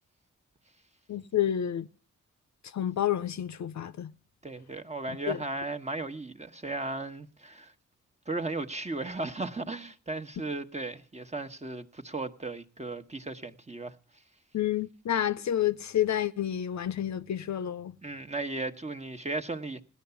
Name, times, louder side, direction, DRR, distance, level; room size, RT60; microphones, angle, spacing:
voice 1, 1.1-1.9 2.7-4.1 5.3-5.4 14.5-17.9, left 11 dB, 65° left, 0.7 m, -29 dB
voice 2, 4.4-7.7 8.3-13.9 18.0-19.8, right 2 dB, 20° right, 1.2 m, -36 dB
17.0 x 11.0 x 6.9 m
cardioid pair, 60°, 31 cm